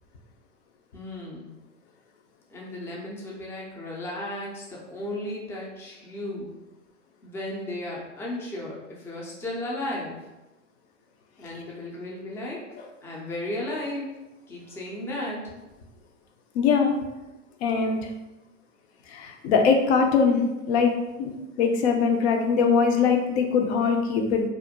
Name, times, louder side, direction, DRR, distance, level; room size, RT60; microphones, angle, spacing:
voice 1, 0.9-1.5 2.5-6.5 7.2-10.2 11.4-12.6 13.0-14.1 14.5-15.4, left 1 dB, 5° left, -4 dB, 0.4 m, -34 dB
voice 2, 16.5-16.9 17.6-18.0 19.1-20.4 20.7-20.9 21.2-24.5, left 5 dB, 60° left, 4 dB, 0.6 m, -22 dB
2.4 x 2.0 x 2.8 m, 1.0 s
hypercardioid pair, 105°, 37 cm